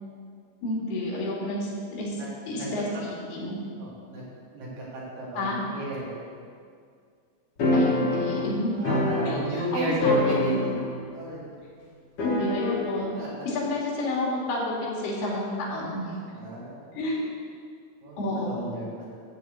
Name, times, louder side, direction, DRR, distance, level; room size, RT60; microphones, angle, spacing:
voice 1, 0.6-3.6 5.3-5.6 7.7-8.7 9.3-10.6 12.2-13.1 13.4-14.7 15.0-16.2 16.9-17.2 18.2-18.7, left 2 dB, 85° left, -4 dB, 4.3 m, -30 dB
voice 2, 3.8-4.2 4.5-6.2 8.8-10.8 11.1-11.5 13.2-13.5 16.3-17.0 18.0-19.2, right 2 dB, 80° right, -6 dB, 4.6 m, -33 dB
sound 1, 7.6-9.7 10.0-11.0 11.3-11.4 12.2-13.0, left 2 dB, 55° left, 1.7 m, -26 dB
13.0 x 4.6 x 8.1 m, 2.2 s
omnidirectional pair, 4.5 m